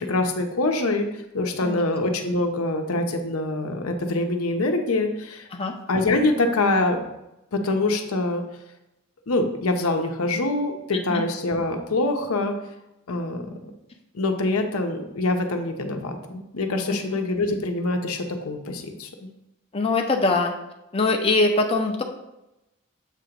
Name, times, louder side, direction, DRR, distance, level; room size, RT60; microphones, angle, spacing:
voice 1, 0.0-5.5 5.9-7.0 7.5-8.4 9.3-12.5 13.1-13.5 14.1-19.3, left 2 dB, 80° left, 5 dB, 0.7 m, -25 dB
voice 2, 19.7-20.5 20.9-22.0, left 3 dB, 25° left, 2 dB, 0.6 m, -22 dB
7.4 x 2.9 x 5.0 m, 0.92 s
head